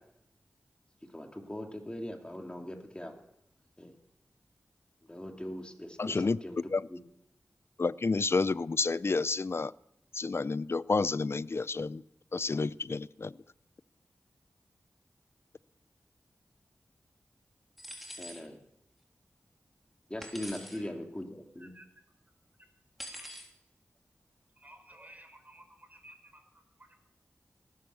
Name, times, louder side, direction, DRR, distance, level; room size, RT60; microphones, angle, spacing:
voice 1, 1.1-3.2 3.8-3.9 5.1-6.6 6.9-7.0 18.2-18.6 20.1-21.7, left 1 dB, 20° left, 3 dB, 2.9 m, -40 dB
voice 2, 6.0-6.4 6.7-6.8 7.8-9.7 10.2-12.0 12.3-13.3, left 4 dB, 50° left, 20 dB, 0.5 m, -30 dB
sound 1, 17.8-18.4 20.2-20.8 23.0-23.5, equal, ahead, 3.4 m, -44 dB
voice 3, 24.6-26.9, right 1 dB, 30° right, 5 dB, 4.9 m, -55 dB
18.5 x 10.5 x 7.0 m, 0.82 s
cardioid pair, 40°, 5 cm